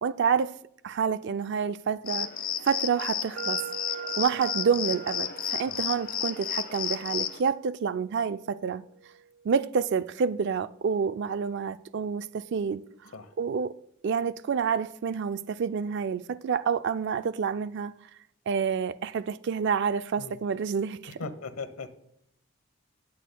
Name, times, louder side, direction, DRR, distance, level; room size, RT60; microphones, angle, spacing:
voice 1, 0.0-0.6 0.8-2.3 2.6-3.6 4.2-8.8 9.4-12.8 13.4-13.8 14.0-17.9 18.5-21.2, right 6 dB, 55° right, 0.4 m, -28 dB
sound 1, 2.1-7.4, left 9 dB, 45° left, 0.7 m, -32 dB
sound 2, 3.4-11.2, right 7 dB, 90° right, 0.7 m, -44 dB
voice 2, 21.2-21.9, left 4 dB, 90° left, 1.0 m, -38 dB
20.0 x 8.3 x 2.2 m
head